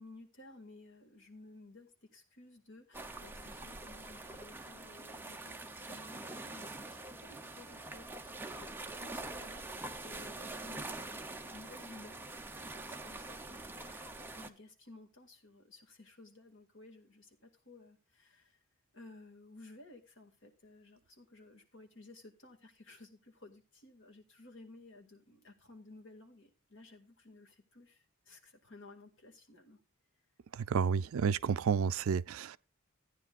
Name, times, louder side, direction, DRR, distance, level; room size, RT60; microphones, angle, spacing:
voice 1, 0.0-18.6 18.9-29.8 31.7-31.8, left 2 dB, 60° left, 2.1 m, -56 dB
sound 1, 2.9-14.5, right 2 dB, 10° right, 0.7 m, -45 dB
voice 2, 30.5-32.6, right 6 dB, 70° right, 0.4 m, -31 dB
15.0 x 9.7 x 2.4 m
head